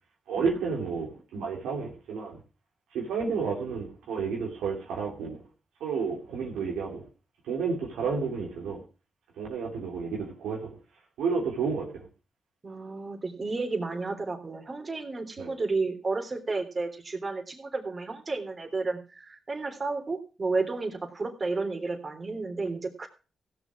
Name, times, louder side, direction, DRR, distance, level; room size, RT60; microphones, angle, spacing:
voice 1, 0.3-2.4 2.9-5.4 5.8-7.1 7.5-8.8 9.4-10.7 11.2-12.0 15.4-15.5, right 5 dB, 90° right, 2.8 m, -31 dB
voice 2, 12.6-23.1, right 3 dB, 40° right, 3.4 m, -32 dB
16.0 x 7.0 x 6.1 m
supercardioid pair, 50°, 0 cm